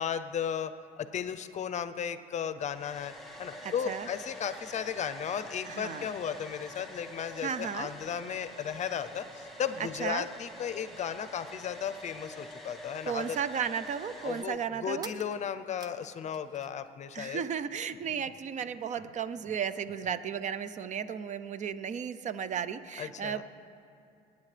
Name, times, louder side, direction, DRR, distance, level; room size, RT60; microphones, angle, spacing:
voice 1, 0.0-13.4 14.2-17.4 23.0-23.4, left 8 dB, 45° left, 12 dB, 0.6 m, -35 dB
Domestic sounds home sounds, 2.7-14.4, left 1 dB, ahead, 1.7 m, -46 dB
voice 2, 3.6-4.1 5.7-6.1 7.4-7.9 10.0-10.3 13.0-15.1 17.1-23.4, right 7 dB, 45° right, 13 dB, 0.6 m, -34 dB
sound 1, 15.0-16.9 17.2-18.1, right 3 dB, 25° right, 0.9 m, -51 dB
26.5 x 9.6 x 3.3 m, 2.6 s
cardioid pair, 110°, 17 cm